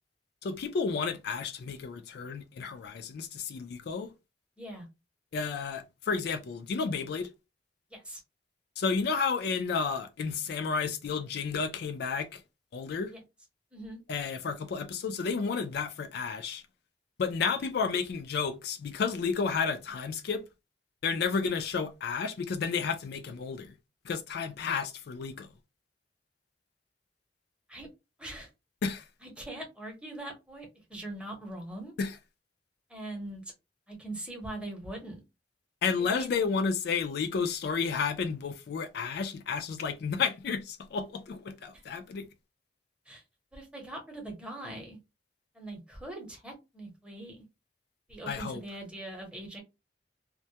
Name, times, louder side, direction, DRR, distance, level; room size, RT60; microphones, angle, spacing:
voice 1, 0.4-4.1 5.3-7.3 8.8-12.4 12.7-13.1 14.1-16.6 17.2-20.4 21.0-23.7 24.0-25.5 28.8-29.0 32.0-32.2 35.8-42.3 48.3-48.6, left 5 dB, 65° left, 0.3 m, -31 dB
voice 2, 4.6-4.9 7.9-8.2 13.1-13.2 13.7-14.0 27.7-27.9 28.2-28.5 29.2-31.9 32.9-33.4 33.9-35.2 36.0-36.4 41.7-41.8 43.1-43.2 43.5-45.0 45.5-47.4 48.1-49.6, right 1 dB, 5° right, 0.8 m, -42 dB
2.2 x 2.1 x 2.7 m
head